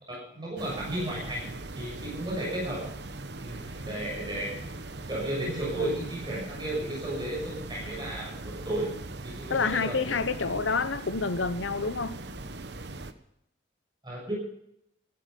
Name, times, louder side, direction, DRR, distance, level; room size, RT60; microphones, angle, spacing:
voice 1, 0.1-1.5 1.7-2.9 3.4-4.6 5.1-8.9 9.2-10.1 14.0-14.3, right 1 dB, 20° right, 7.1 m, -33 dB
sound 1, 0.6-13.1, right 2 dB, 60° right, 1.0 m, -40 dB
sound 2, 3.6-12.8, equal, 10° left, 8.0 m, -55 dB
voice 2, 9.5-12.2, left 4 dB, 75° left, 0.9 m, -28 dB
15.5 x 13.0 x 5.3 m
head